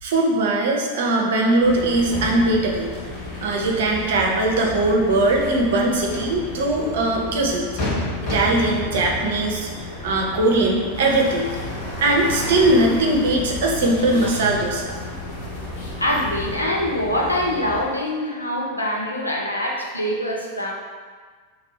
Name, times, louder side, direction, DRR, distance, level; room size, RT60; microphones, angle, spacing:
voice 1, 0.0-2.9 3.4-7.7 8.3-11.5 12.0-14.9, right 2 dB, 55° right, 0 dB, 0.6 m, -20 dB
sound 1, 1.6-17.8, left 2 dB, 35° left, 1.4 m, -33 dB
sound 2, 10.9-16.6, left 2 dB, 55° left, 1.0 m, -33 dB
voice 2, 16.0-20.7, left 1 dB, 85° left, -1 dB, 0.5 m, -24 dB
2.8 x 2.6 x 4.1 m, 1.5 s
figure-of-eight pair, 90°, 0 cm